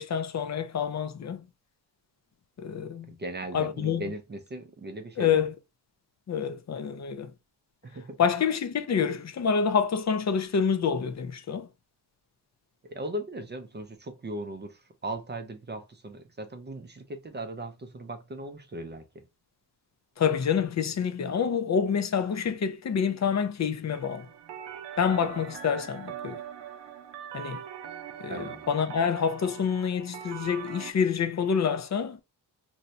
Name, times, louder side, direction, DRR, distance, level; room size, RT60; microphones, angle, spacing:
voice 1, 0.0-1.4 2.6-3.1 3.5-4.0 5.2-5.5 6.3-7.3 8.2-11.7 20.2-24.3 25.0-26.4 27.3-27.6 28.2-32.2, left 7 dB, 40° left, 0.5 m, -27 dB
voice 2, 3.1-5.5 7.8-8.2 12.8-19.2 28.3-28.7, right 1 dB, 25° right, 0.5 m, -38 dB
sound 1, 23.9-30.9, right 9 dB, 75° right, 0.7 m, -42 dB
2.6 x 2.2 x 4.0 m
wide cardioid pair, 95°, 42 cm